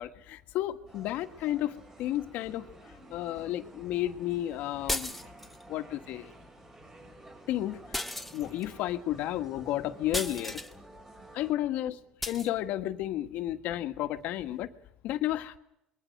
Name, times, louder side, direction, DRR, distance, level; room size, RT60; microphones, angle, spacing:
voice 1, 0.0-5.2 5.7-6.3 7.5-8.0 8.3-10.6 11.3-14.7 15.0-15.6, left 13 dB, 70° left, 9 dB, 1.6 m, -32 dB
sound 1, 0.9-11.5, right 2 dB, 20° right, 6.0 m, -53 dB
Singing, 1.2-8.9, right 3 dB, 35° right, 7.6 m, -60 dB
sound 2, 4.9-5.6 7.9-8.7 10.1-10.7 12.2-12.5, left 1 dB, 5° left, 1.6 m, -35 dB
26.0 x 22.0 x 6.6 m, 0.81 s
supercardioid pair, 105°, 3 cm